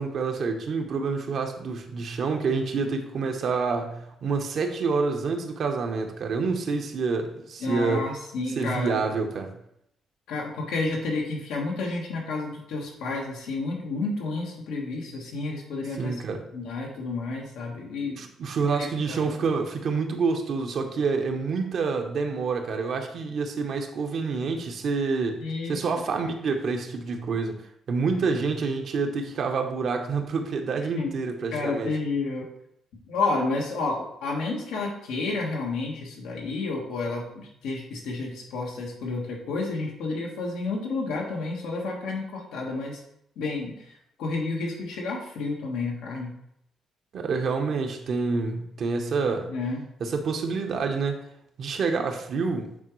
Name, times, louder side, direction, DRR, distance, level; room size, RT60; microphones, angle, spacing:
voice 1, 0.0-8.1 8.6-9.5 16.0-16.4 18.0-27.6 27.9-31.9 47.1-49.5 50.0-51.2 51.6-52.7, right 4 dB, 60° right, 4 dB, 0.9 m, -27 dB
voice 2, 7.6-9.0 10.3-16.2 16.5-18.2 18.7-19.2 25.4-25.8 30.9-31.1 31.5-32.4 33.1-43.0 43.3-43.9 44.2-46.3 49.5-49.8, left 3 dB, 90° left, -1 dB, 1.4 m, -30 dB
8.5 x 3.7 x 3.1 m, 0.75 s
cardioid pair, 90°, 0 cm